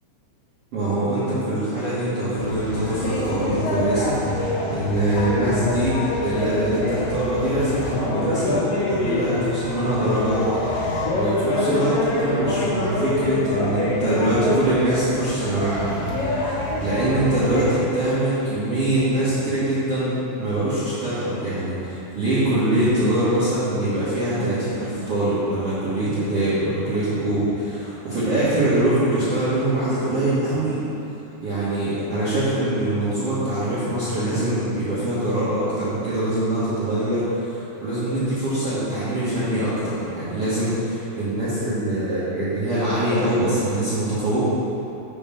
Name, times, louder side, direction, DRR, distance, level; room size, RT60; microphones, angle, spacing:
voice 1, 0.7-6.0 6.2-30.8 31.4-44.4, right 1 dB, 75° right, -13 dB, 1.3 m, -23 dB
sound 1, 2.4-17.8, left 2 dB, 60° left, 2.7 m, -26 dB
6.2 x 5.5 x 7.0 m, 3.0 s
omnidirectional pair, 5.4 m